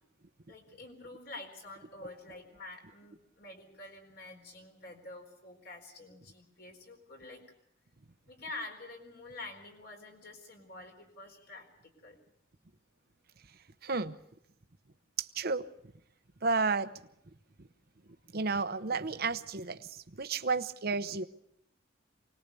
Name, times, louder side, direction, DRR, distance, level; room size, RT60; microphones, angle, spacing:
voice 1, 0.5-7.4 8.3-12.2 20.4-20.5, left 2 dB, 55° left, 3 dB, 4.3 m, -47 dB
voice 2, 13.8-14.2 15.2-15.7 16.4-16.9 17.6-17.7 18.3-21.2, right 4 dB, 50° right, 11 dB, 0.9 m, -32 dB
25.0 x 20.0 x 6.9 m, 0.76 s
head